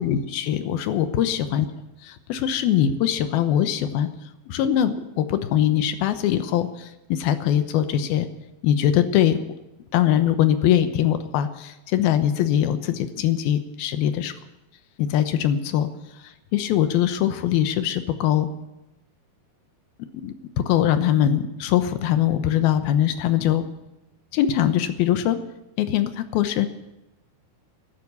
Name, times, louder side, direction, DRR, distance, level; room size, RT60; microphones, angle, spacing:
voice 1, 0.0-1.7 2.0-4.1 4.5-8.3 8.6-9.4 9.9-14.3 15.0-15.9 16.5-18.5 20.2-23.6 24.3-25.4 25.8-26.7, left 10 dB, 85° left, 10 dB, 2.8 m, -22 dB
13.5 x 12.0 x 8.4 m, 0.94 s
omnidirectional pair, 4.3 m